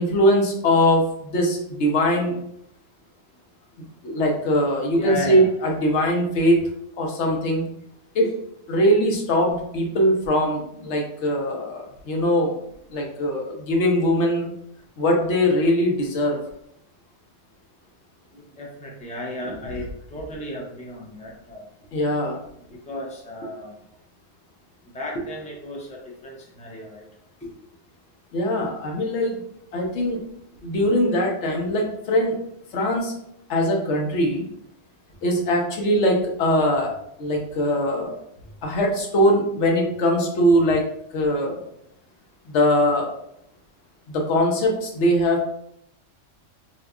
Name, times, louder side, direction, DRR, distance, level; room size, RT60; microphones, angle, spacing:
voice 1, 0.0-2.4 4.0-6.6 7.0-7.6 8.1-8.3 8.7-12.6 12.9-14.5 15.0-16.4 21.9-22.4 28.3-29.4 29.7-30.2 30.6-32.4 32.7-33.1 33.5-34.4 35.2-36.9 37.2-38.2 38.6-40.8 41.1-41.6 42.5-43.1 44.1-45.4, equal, 70° left, 1 dB, 1.0 m, -21 dB
voice 2, 4.9-5.5 8.2-8.3 18.3-21.7 22.6-23.7 24.8-27.1 27.4-27.5, left 2 dB, 10° left, -2 dB, 0.3 m, -34 dB
3.7 x 2.7 x 2.3 m, 0.76 s
omnidirectional pair, 1.3 m